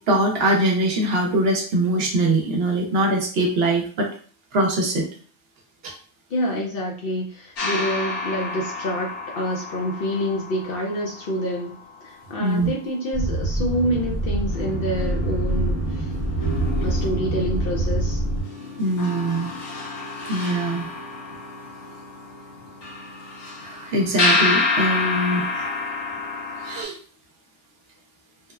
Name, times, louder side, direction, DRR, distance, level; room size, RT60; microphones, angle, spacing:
voice 1, 0.1-4.1 4.5-5.1 5.8-5.9 12.4-12.7 18.8-19.5 20.3-20.9 23.6-25.7 26.6-27.0, right 1 dB, 65° right, 1 dB, 0.8 m, -22 dB
voice 2, 6.3-16.1 16.8-18.2, equal, 60° left, -1 dB, 0.7 m, -27 dB
sound 1, 7.6-12.4 13.9-14.0 14.4-26.8, left 3 dB, 80° left, 1.1 m, -29 dB
sound 2, 13.1-18.4, right 2 dB, 5° left, 0.8 m, -25 dB
2.9 x 2.1 x 2.3 m, 0.42 s
omnidirectional pair, 1.2 m